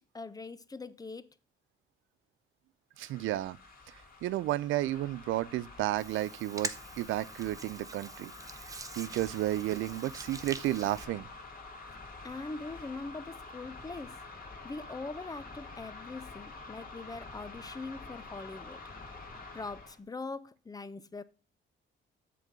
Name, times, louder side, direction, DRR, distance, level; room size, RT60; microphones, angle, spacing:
voice 1, 0.1-1.3 12.2-14.2 14.6-18.8 19.5-21.2, left 3 dB, 20° left, 0.5 m, -42 dB
sound 1, 2.9-20.0, left 3 dB, 45° left, 2.2 m, -48 dB
voice 2, 3.0-3.6 4.2-8.3 8.9-11.3, right 15 dB, 80° right, 0.4 m, -32 dB
Hands, 6.0-11.0, right 3 dB, 15° right, 0.7 m, -44 dB
7.6 x 3.8 x 6.5 m
cardioid pair, 90°, 20 cm